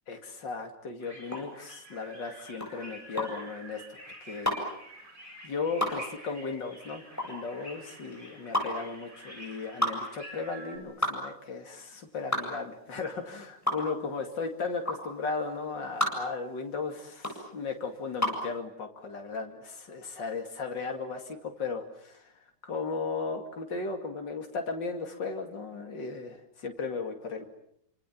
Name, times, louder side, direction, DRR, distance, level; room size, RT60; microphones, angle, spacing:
voice 1, 0.1-4.5 5.4-27.5, left 4 dB, 90° left, 4 dB, 3.2 m, -36 dB
sound 1, 1.0-10.8, right 1 dB, 25° right, 8.2 m, -48 dB
sound 2, 1.2-18.5, left 1 dB, 10° left, 7.9 m, -33 dB
29.5 x 26.5 x 7.5 m, 0.73 s
omnidirectional pair, 1.9 m